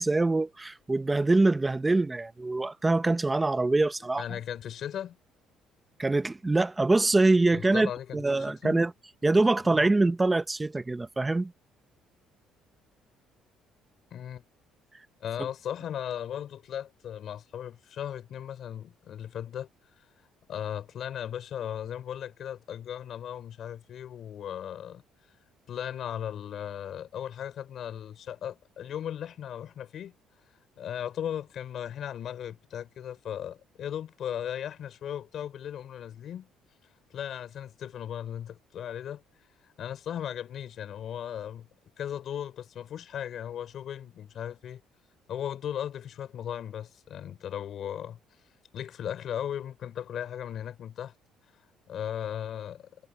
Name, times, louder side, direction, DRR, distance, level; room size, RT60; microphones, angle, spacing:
voice 1, 0.0-4.2 6.0-8.9 9.2-11.5, right 2 dB, 10° right, 0.6 m, -24 dB
voice 2, 4.2-5.2 7.5-8.8 9.6-9.8 14.1-14.4 15.2-19.7 20.5-25.0 25.7-30.1 30.8-36.5 37.1-39.2 39.8-41.7 42.0-44.8 45.3-48.2 48.7-51.1 51.9-52.9, left 9 dB, 50° left, 4.6 m, -37 dB
cardioid pair, 150°, 0 cm